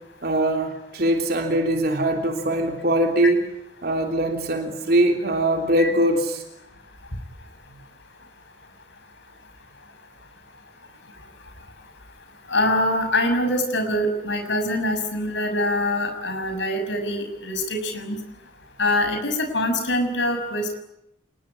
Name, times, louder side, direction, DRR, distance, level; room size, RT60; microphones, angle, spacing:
voice 1, 0.2-3.4 3.8-6.4, right 1 dB, 55° right, 3 dB, 3.2 m, -22 dB
voice 2, 12.5-18.2 18.8-20.8, left 1 dB, 75° left, 6 dB, 6.3 m, -24 dB
28.0 x 21.5 x 10.0 m, 0.82 s
head